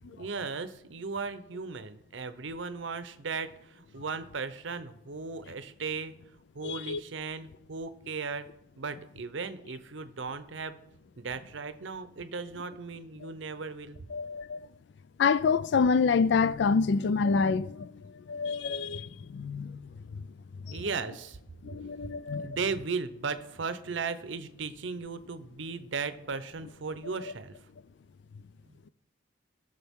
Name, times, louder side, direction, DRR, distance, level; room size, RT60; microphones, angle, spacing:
voice 1, 0.2-6.1 6.5-8.5 8.8-10.8 11.2-14.0 20.7-21.4 22.0-22.1 22.4-27.5 28.7-28.8, right 4 dB, 75° right, 0.7 m, -36 dB
voice 2, 6.6-7.0 14.1-14.6 15.2-17.9 18.3-19.8 20.7-20.8 21.6-22.5, left 5 dB, 65° left, 0.3 m, -27 dB
18.5 x 6.6 x 3.6 m
head